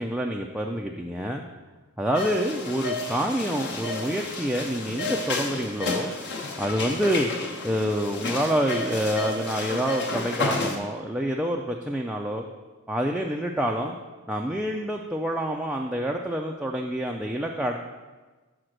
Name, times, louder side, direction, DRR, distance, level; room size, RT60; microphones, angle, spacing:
voice 1, 0.0-1.4 2.0-6.1 6.6-7.3 7.6-12.4 12.9-14.0 14.3-17.8, equal, 5° right, 0 dB, 0.3 m, -27 dB
sound 1, 2.1-10.8, left 3 dB, 50° left, 0.9 m, -31 dB
6.0 x 5.0 x 6.4 m, 1.3 s
head